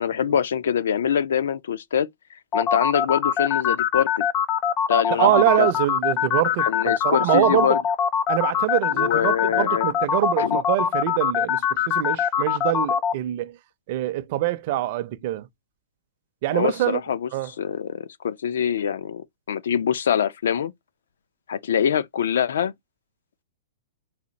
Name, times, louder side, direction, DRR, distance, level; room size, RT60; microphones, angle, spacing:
voice 1, 0.0-2.1 2.5-4.3 4.9-5.7 6.6-7.8 8.9-9.9 10.4-10.6 16.5-20.7 21.5-22.7, left 8 dB, 80° left, 0.5 m, -24 dB
sound 1, 2.5-13.1, left 8 dB, 20° left, 0.3 m, -23 dB
voice 2, 5.1-7.8 8.3-13.6 13.9-15.5 16.4-17.0 17.3-17.5, right 15 dB, 40° right, 0.5 m, -24 dB
4.2 x 2.5 x 4.0 m
hypercardioid pair, 160°, 0 cm